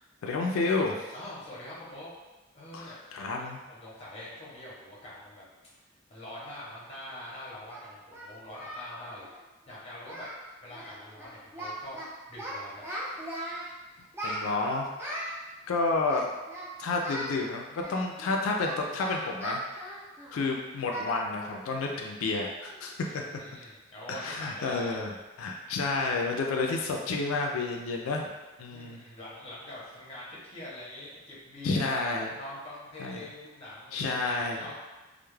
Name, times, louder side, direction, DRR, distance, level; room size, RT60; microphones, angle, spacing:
voice 1, 0.2-1.1 2.7-3.6 14.2-15.1 15.7-16.3 16.8-19.9 20.3-22.9 24.1-25.1 25.4-28.3 28.6-29.0 31.6-32.3 33.0-33.3 33.9-34.6, left 3 dB, 75° left, 1 dB, 0.3 m, -30 dB
voice 2, 1.1-2.1 2.5-5.4 6.1-9.3 9.7-10.3 10.6-12.0 12.3-12.8 23.0-25.0 28.6-34.8, left 1 dB, 30° left, -7 dB, 0.7 m, -44 dB
Singing, 6.9-7.0 7.7-8.9 9.2-9.4 9.7-9.8 10.0-10.4 10.7-10.9 11.2-12.1 12.4-13.7 14.1-15.3 16.0-16.7 17.0-17.3 17.8-20.4 20.9-21.1 21.5-21.6 22.1-22.2 22.6-22.9, right 1 dB, 10° right, 0.3 m, -38 dB
2.2 x 2.0 x 3.1 m, 1.2 s
head